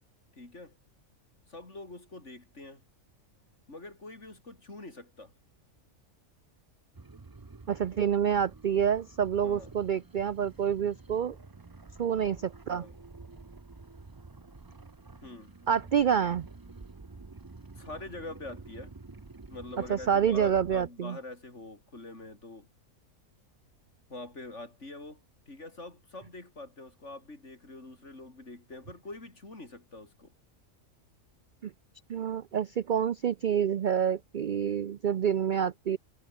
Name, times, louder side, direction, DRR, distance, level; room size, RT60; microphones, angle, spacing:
voice 1, 0.4-0.7 1.5-2.8 3.7-5.3 9.4-9.7 12.7-12.9 15.2-15.5 17.7-18.9 19.5-22.7 24.1-30.3, left 2 dB, 60° left, 4.9 m, -45 dB
mythological snarling beast, 6.9-20.9, right 3 dB, 20° right, 0.7 m, -49 dB
voice 2, 7.7-11.4 12.0-12.8 15.7-16.5 19.9-21.2 31.6-31.7 32.1-36.0, right 8 dB, 60° right, 0.5 m, -27 dB
omnidirectional pair, 1.4 m